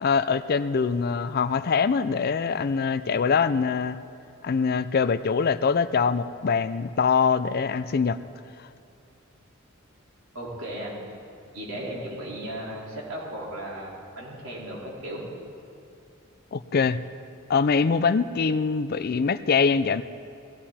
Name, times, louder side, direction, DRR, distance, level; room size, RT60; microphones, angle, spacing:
voice 1, 0.0-4.0 4.4-8.2 16.5-17.0 17.5-20.0, left 5 dB, 50° left, 14 dB, 0.4 m, -23 dB
voice 2, 10.3-11.0 11.5-15.2, right 1 dB, 80° right, -5 dB, 4.6 m, -36 dB
19.0 x 16.0 x 4.3 m, 2.5 s
head